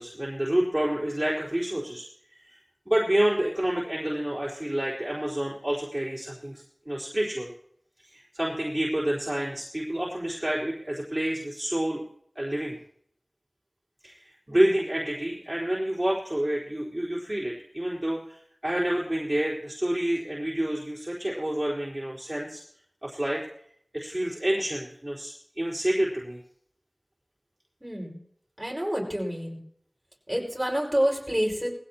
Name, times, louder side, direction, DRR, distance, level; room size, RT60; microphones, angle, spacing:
voice 1, 0.0-2.1 2.4-2.6 2.9-7.5 8.0-12.0 12.4-12.8 14.0-22.6 23.0-23.4 23.9-26.4, right 1 dB, 30° right, -6 dB, 4.1 m, -28 dB
voice 2, 27.8-28.2 28.6-29.6 30.3-31.7, equal, 10° right, -2 dB, 5.5 m, -28 dB
20.5 x 15.5 x 3.0 m, 0.66 s
wide cardioid pair, 40°, 0 cm